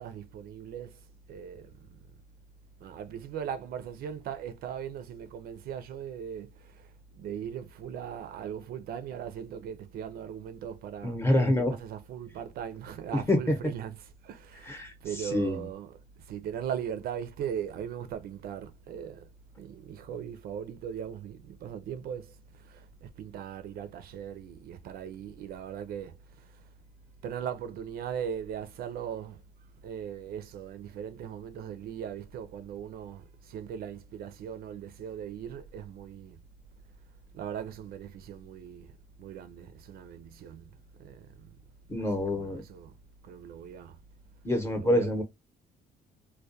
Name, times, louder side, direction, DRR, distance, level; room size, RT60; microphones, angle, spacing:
voice 1, 0.0-1.9 2.8-19.3 19.6-26.7 27.2-29.4 29.8-36.4 37.3-41.5 42.0-43.0 43.2-44.0 44.8-45.2, right 8 dB, 65° right, 0.4 m, -39 dB
voice 2, 11.0-11.7 13.1-13.6 14.6-15.6 41.9-42.6 44.4-45.2, left 1 dB, 15° left, 0.7 m, -27 dB
2.2 x 2.1 x 2.6 m
cardioid pair, 110°, 17 cm